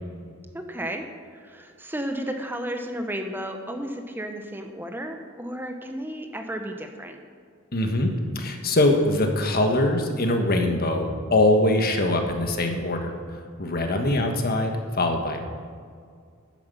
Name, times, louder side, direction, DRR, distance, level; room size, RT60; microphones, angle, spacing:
voice 1, 0.5-1.1 1.3-7.2, equal, 10° right, 5 dB, 0.8 m, -33 dB
voice 2, 7.7-13.1 13.6-15.4, left 1 dB, 50° left, 4 dB, 1.4 m, -23 dB
9.9 x 9.5 x 6.9 m, 2.1 s
head